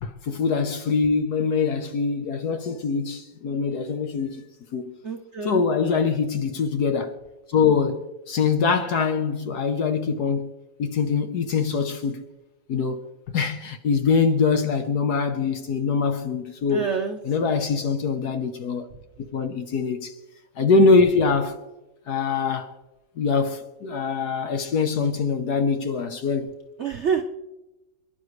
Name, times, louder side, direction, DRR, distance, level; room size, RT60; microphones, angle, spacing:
voice 1, 0.0-4.4 4.7-5.0 5.4-7.1 7.5-10.5 10.8-12.3 12.7-13.1 13.3-16.8 17.2-18.9 19.3-20.1 20.6-21.6 22.1-22.7 23.2-26.5, left 5 dB, 60° left, 1.2 m, -23 dB
voice 2, 5.0-5.6 16.7-17.2 26.8-27.2, right 6 dB, 65° right, 0.7 m, -26 dB
27.0 x 11.0 x 3.2 m
omnidirectional pair, 2.3 m